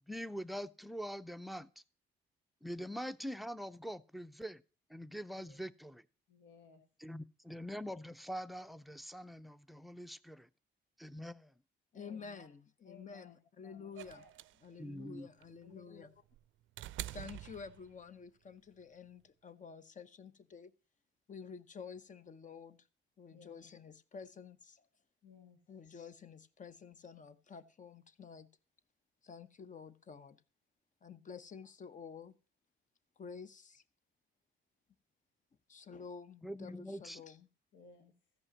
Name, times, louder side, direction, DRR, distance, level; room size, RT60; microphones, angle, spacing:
voice 1, 0.1-1.7 2.6-4.6 4.9-6.0 7.0-10.5 11.0-11.5 14.8-15.3 36.4-37.2, equal, ahead, 0.5 m, -44 dB
voice 2, 6.3-6.8 11.9-12.5 12.8-14.3 15.6-16.1 23.3-23.7 25.2-25.6 37.7-38.1, left 5 dB, 75° left, 1.6 m, -59 dB
voice 3, 11.9-14.2 14.6-16.1 17.1-20.7 21.3-22.8 23.2-24.9 25.7-28.5 29.2-30.4 31.0-32.3 33.2-33.8 35.7-37.5, left 6 dB, 40° left, 0.9 m, -50 dB
sound 1, 14.0-18.2 19.5-19.6, right 15 dB, 75° right, 0.4 m, -47 dB
14.5 x 5.5 x 7.2 m
cardioid pair, 90°, 20 cm